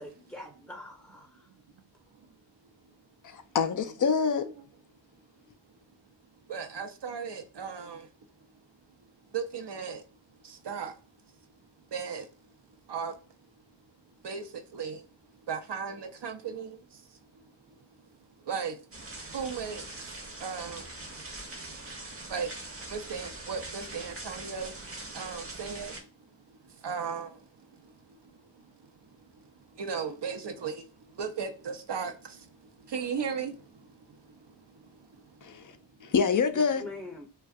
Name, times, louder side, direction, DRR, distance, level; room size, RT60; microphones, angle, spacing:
voice 1, 0.0-1.5 36.3-37.3, left 2 dB, 5° left, 0.6 m, -44 dB
voice 2, 3.2-4.5 35.4-35.8 36.0-36.8, left 6 dB, 45° left, 0.5 m, -26 dB
voice 3, 6.5-8.1 9.3-10.0 10.4-11.0 11.9-12.3 12.9-13.2 14.2-15.1 15.5-17.8 18.4-18.9 19.3-26.1 26.5-36.1, right 6 dB, 60° right, 0.6 m, -38 dB
sound 1, 18.9-26.0, right 2 dB, 30° right, 0.8 m, -42 dB
2.5 x 2.3 x 2.3 m
cardioid pair, 45°, 46 cm